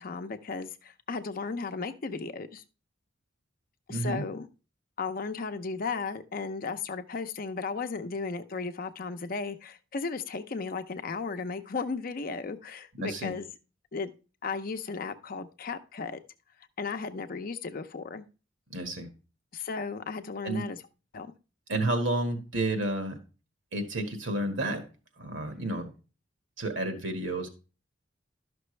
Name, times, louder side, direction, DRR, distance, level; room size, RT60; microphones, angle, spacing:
voice 1, 0.0-2.6 3.9-4.5 5.0-13.5 13.9-14.1 14.4-16.2 16.8-18.2 19.5-20.8 21.1-21.3, left 4 dB, 50° left, 0.6 m, -35 dB
voice 2, 3.9-4.2 13.0-13.3 18.7-19.1 20.4-20.6 21.7-23.2 23.7-24.8 25.2-25.9 26.6-27.5, right 1 dB, 85° right, 1.7 m, -30 dB
11.5 x 6.0 x 3.2 m
head